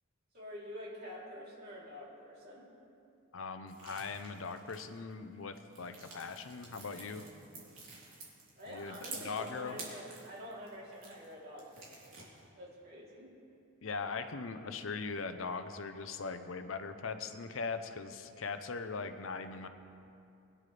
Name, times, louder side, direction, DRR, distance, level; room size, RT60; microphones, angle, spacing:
voice 1, 0.3-2.6 8.6-12.2 12.5-13.3, equal, 50° right, -6 dB, 3.2 m, -47 dB
voice 2, 3.3-7.2 8.7-9.8 13.8-19.7, left 4 dB, 75° left, 9 dB, 0.7 m, -40 dB
sound 1, 3.7-5.1 5.5-11.3 11.6-12.5, right 3 dB, 75° right, 3.2 m, -50 dB
21.5 x 10.0 x 3.3 m, 2.6 s
head